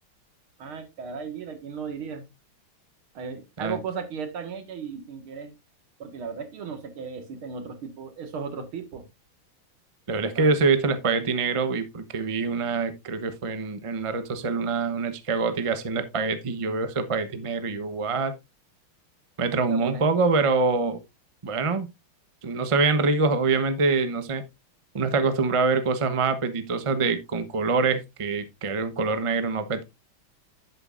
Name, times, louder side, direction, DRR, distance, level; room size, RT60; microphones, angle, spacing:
voice 1, 0.6-2.3 3.1-5.5 6.0-9.1 10.4-10.5 19.7-20.1, right 5 dB, 80° right, 7 dB, 2.5 m, -36 dB
voice 2, 10.1-18.3 19.4-21.0 21.4-21.9 22.4-24.4 24.9-29.8, right 4 dB, 30° right, 10 dB, 0.5 m, -25 dB
11.0 x 8.8 x 2.5 m, 0.22 s
omnidirectional pair, 2.3 m